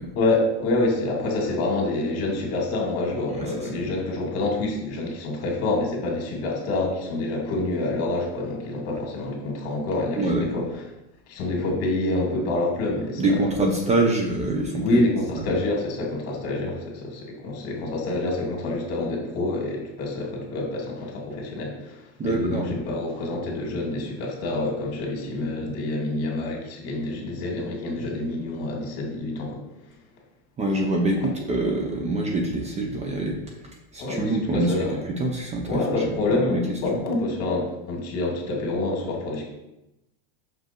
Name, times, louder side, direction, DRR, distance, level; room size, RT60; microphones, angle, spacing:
voice 1, 0.2-10.6 11.3-13.2 14.8-29.6 34.0-35.0 35.7-39.4, left 2 dB, 45° left, 0 dB, 2.5 m, -27 dB
voice 2, 3.3-3.8 10.2-10.7 13.2-15.0 15.4-15.5 22.2-22.8 30.6-33.4 33.9-34.7 35.1-37.0, right 2 dB, 20° right, 2 dB, 0.9 m, -25 dB
6.1 x 5.5 x 4.5 m, 0.91 s
supercardioid pair, 130°, 33 cm